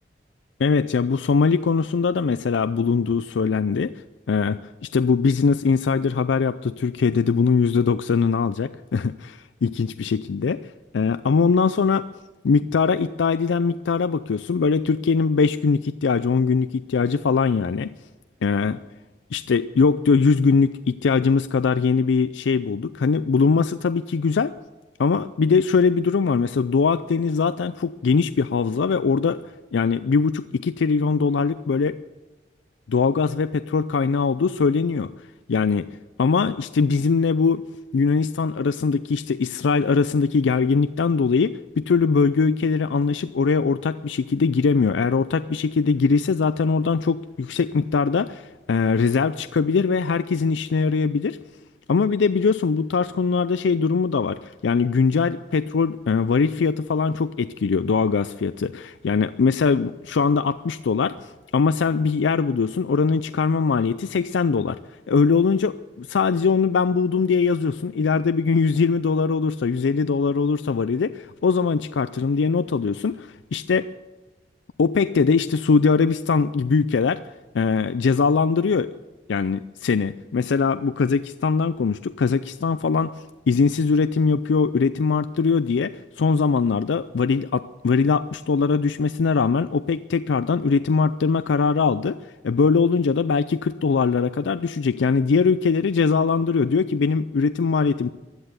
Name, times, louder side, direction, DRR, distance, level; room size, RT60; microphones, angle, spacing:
voice 1, 0.6-3.9 4.3-4.6 4.9-12.1 12.4-17.9 18.4-18.8 19.3-24.5 25.0-29.4 29.7-32.0 32.9-35.1 35.5-35.9 36.2-37.6 37.9-51.4 51.9-64.8 65.1-73.9 74.8-77.2 77.5-78.9 79.3-83.1 83.5-92.2 92.4-98.1, left 5 dB, 85° left, 13 dB, 0.4 m, -21 dB
15.5 x 11.0 x 8.1 m, 1.2 s
head